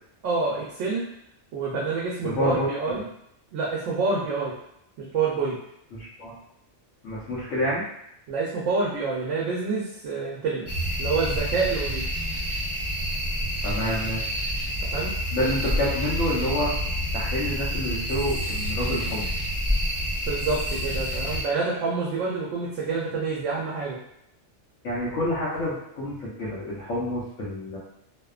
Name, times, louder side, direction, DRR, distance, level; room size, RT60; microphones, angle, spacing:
voice 1, 0.2-1.1 1.5-3.0 3.5-4.5 5.0-5.6 8.3-10.7 11.0-12.0 14.9-15.1 20.2-24.0, right 4 dB, 85° right, -4 dB, 0.9 m, -27 dB
voice 2, 2.2-3.0 5.9-6.3 7.0-7.8 13.6-14.4 15.3-16.7 17.1-19.3 24.8-27.8, left 1 dB, 85° left, -8 dB, 1.0 m, -28 dB
sound 1, 10.7-21.4, equal, 25° left, 0.8 m, -28 dB
2.7 x 2.0 x 2.3 m, 0.76 s
omnidirectional pair, 1.3 m